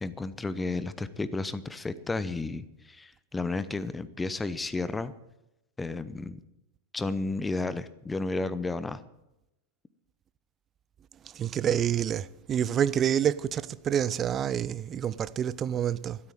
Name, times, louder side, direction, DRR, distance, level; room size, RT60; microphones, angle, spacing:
voice 1, 0.0-5.1 5.8-6.4 6.9-9.0, left 3 dB, 10° left, 0.8 m, -32 dB
voice 2, 11.4-16.2, right 9 dB, 25° right, 0.5 m, -28 dB
13.0 x 8.4 x 9.1 m
figure-of-eight pair, 90°, 0 cm